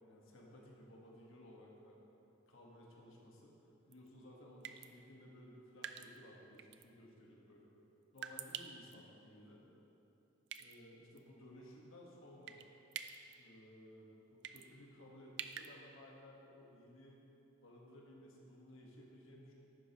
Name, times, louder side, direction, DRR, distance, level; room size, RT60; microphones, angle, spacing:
voice 1, 0.0-2.0 2.5-3.5 3.9-7.7 8.1-9.6 10.6-12.6 13.3-17.2 17.6-19.5, left 1 dB, 70° left, -2 dB, 1.5 m, -58 dB
sound 1, 3.9-4.1 4.6-4.9 5.8-6.2 6.6-6.8 8.2-8.9 10.5-10.8 11.2-11.3 12.5-12.7 12.9-13.3 14.4-14.7 15.4-15.7, right 9 dB, 55° right, 0.4 m, -46 dB
11.0 x 8.6 x 3.0 m, 3.0 s
head